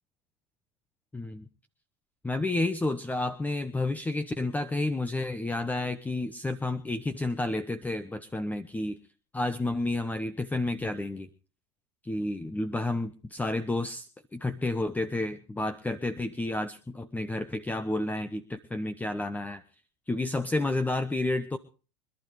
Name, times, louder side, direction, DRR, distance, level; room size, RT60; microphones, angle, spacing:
voice 1, 1.1-1.5 2.2-9.0 9.3-11.3 12.0-19.6 20.1-21.6, left 2 dB, 10° left, 13 dB, 1.0 m, -30 dB
25.5 x 12.0 x 3.2 m, 0.36 s
hypercardioid pair, 90°, 15 cm